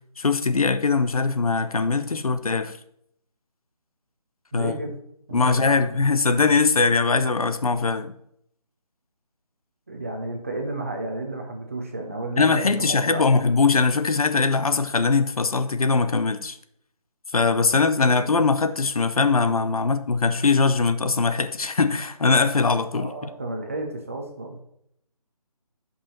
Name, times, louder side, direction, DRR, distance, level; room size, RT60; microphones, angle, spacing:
voice 1, 0.2-2.8 4.5-4.7 5.3-8.1 12.4-16.6 17.3-23.1, left 4 dB, 65° left, 0.8 m, -21 dB
voice 2, 4.5-4.9 5.3-5.9 9.9-13.3 18.2-18.3 22.9-24.6, right 2 dB, 20° right, 0.8 m, -32 dB
10.0 x 5.6 x 4.3 m
figure-of-eight pair, 175°, 20 cm